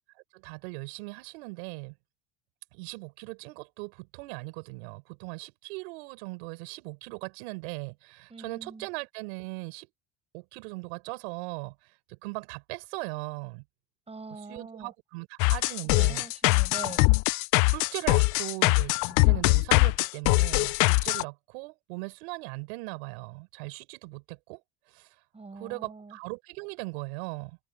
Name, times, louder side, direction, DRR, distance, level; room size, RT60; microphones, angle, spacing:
voice 1, 0.3-1.9 2.7-9.9 10.3-13.6 14.5-16.2 17.7-24.6 24.9-25.1 25.5-27.6, right 29 dB, 80° right, 7.5 m, -39 dB
voice 2, 8.3-8.9 14.1-14.9 15.9-17.0 25.3-26.2, right 3 dB, 20° right, 6.8 m, -43 dB
sound 1, 15.4-21.2, left 28 dB, 70° left, 0.5 m, -22 dB
supercardioid pair, 85°, 32 cm